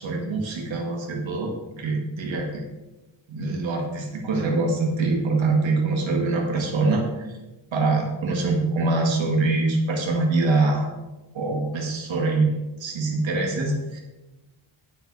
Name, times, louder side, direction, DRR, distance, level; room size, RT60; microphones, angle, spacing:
voice 1, 0.0-2.7 3.3-7.3 7.7-10.9 11.3-12.5 12.8-14.0, right 3 dB, 85° right, 1 dB, 2.0 m, -24 dB
9.1 x 7.8 x 4.2 m, 1.1 s
cardioid pair, 90°, 45 cm